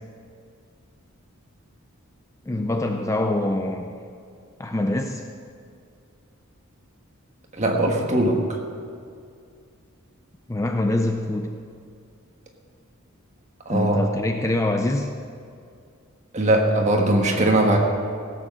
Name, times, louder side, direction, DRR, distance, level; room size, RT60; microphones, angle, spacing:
voice 1, 2.4-4.0 4.6-5.2 10.5-11.5 13.7-15.1, left 1 dB, 15° left, 5 dB, 0.4 m, -24 dB
voice 2, 7.5-8.6 13.6-14.0 16.3-17.8, right 1 dB, 30° right, 1 dB, 1.5 m, -20 dB
16.5 x 7.6 x 6.4 m, 2.3 s
head